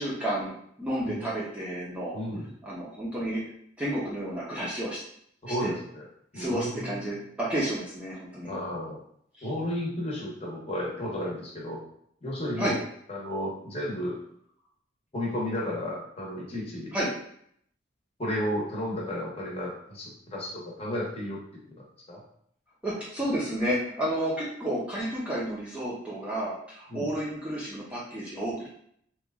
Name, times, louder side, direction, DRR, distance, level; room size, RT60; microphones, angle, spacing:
voice 1, 0.0-2.2 2.6-3.4 3.8-5.0 5.5-5.7 6.3-8.5 9.4-9.5 12.6-12.8 16.9-17.1 22.8-28.7, right 1 dB, 5° right, -7 dB, 0.6 m, -31 dB
voice 2, 2.1-2.5 5.4-6.0 6.3-7.2 8.4-9.0 9.4-11.8 12.2-12.8 13.1-14.2 15.1-16.9 18.2-21.4 21.7-22.2 26.9-27.1, left 1 dB, 30° left, -4 dB, 0.9 m, -33 dB
2.9 x 2.3 x 3.5 m, 0.67 s
head